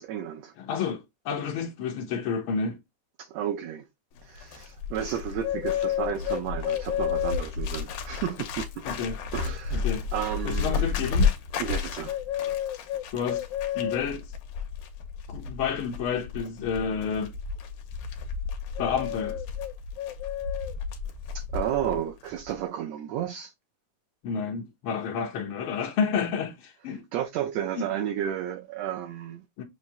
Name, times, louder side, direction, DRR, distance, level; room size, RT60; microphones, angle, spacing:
voice 1, 0.0-0.5 3.2-3.9 4.2-8.8 9.3-10.9 11.6-12.2 21.3-23.5 27.1-29.4, right 10 dB, 75° right, 1.6 m, -32 dB
voice 2, 0.6-2.8 8.8-9.2 9.7-10.1 10.4-11.3 13.1-13.4 13.7-14.3 15.3-17.3 18.8-19.4 24.2-27.0 27.8-27.9 29.6-29.7, left 6 dB, 70° left, 1.2 m, -30 dB
Bird, 4.2-22.0 22.2-22.6, left 7 dB, 90° left, 2.3 m, -31 dB
7.3 x 2.6 x 2.7 m
omnidirectional pair, 3.5 m